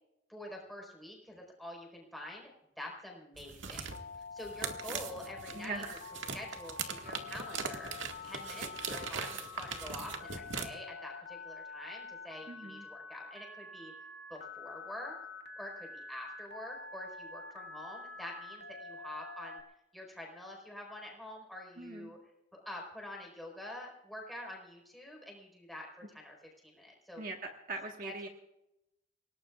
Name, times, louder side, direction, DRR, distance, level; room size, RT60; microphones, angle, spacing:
voice 1, 0.3-2.5 2.8-3.9 4.3-5.8 6.3-7.9 8.2-13.9 14.3-15.1 15.6-19.6 19.9-22.2 22.5-26.3 26.6-27.2 28.0-28.3, left 1 dB, ahead, -1 dB, 4.4 m, -46 dB
sound 1, 3.3-10.7, right 5 dB, 80° right, 1.8 m, -40 dB
Telephone, 3.9-19.6, left 4 dB, 60° left, 1.9 m, -47 dB
voice 2, 5.5-6.0 12.5-12.8 21.8-22.1 27.2-28.3, right 3 dB, 45° right, 1 dB, 1.5 m, -41 dB
28.0 x 18.0 x 2.4 m, 0.89 s
head